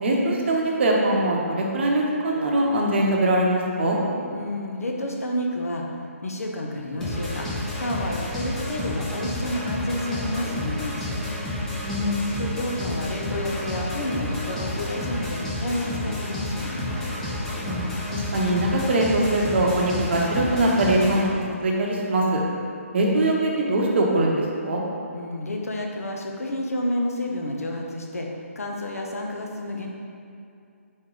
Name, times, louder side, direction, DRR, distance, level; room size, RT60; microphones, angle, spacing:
voice 1, 0.0-4.0 11.8-12.2 17.6-21.3 21.6-22.4 22.9-24.8, right 1 dB, 50° right, -1 dB, 0.8 m, -22 dB
voice 2, 4.3-5.8 6.2-7.5 7.8-11.2 12.4-17.0 25.1-29.9, left 1 dB, 80° left, 0 dB, 0.7 m, -30 dB
sound 1, 7.0-21.2, left 1 dB, 5° left, 0.6 m, -30 dB
4.4 x 3.1 x 3.8 m, 2.5 s
figure-of-eight pair, 145°, 8 cm